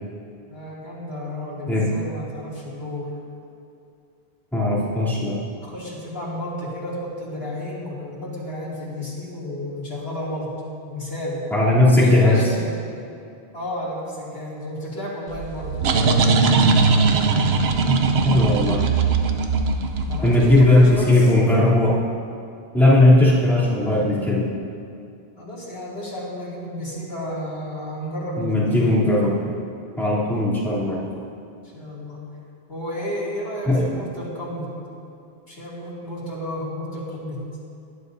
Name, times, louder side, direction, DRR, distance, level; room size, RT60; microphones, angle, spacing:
voice 1, 0.5-3.1 5.6-10.5 10.9-11.4 11.9-12.7 13.5-15.8 20.1-21.3 25.4-28.9 31.7-32.2 32.7-34.7 35.5-37.4, left 1 dB, 70° left, -7 dB, 2.9 m, -32 dB
voice 2, 4.5-5.4 11.5-12.4 18.2-18.9 20.2-22.0 22.7-24.5 28.4-29.5 30.0-31.0 33.7-33.9, left 2 dB, ahead, -10 dB, 3.1 m, -17 dB
sound 1, 15.3-20.9, right 4 dB, 85° right, 1.0 m, -20 dB
20.5 x 11.5 x 2.7 m, 2.5 s
omnidirectional pair, 1.0 m